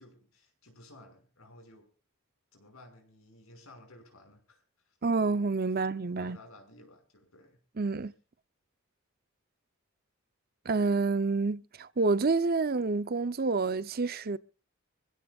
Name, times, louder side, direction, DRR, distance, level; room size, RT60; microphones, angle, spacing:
voice 1, 0.0-1.9 2.5-5.0 5.7-7.6, left 1 dB, 90° left, 5.7 m, -55 dB
voice 2, 5.0-6.4 7.8-8.1 10.6-14.4, right 3 dB, 45° right, 0.7 m, -28 dB
26.0 x 16.0 x 2.4 m
head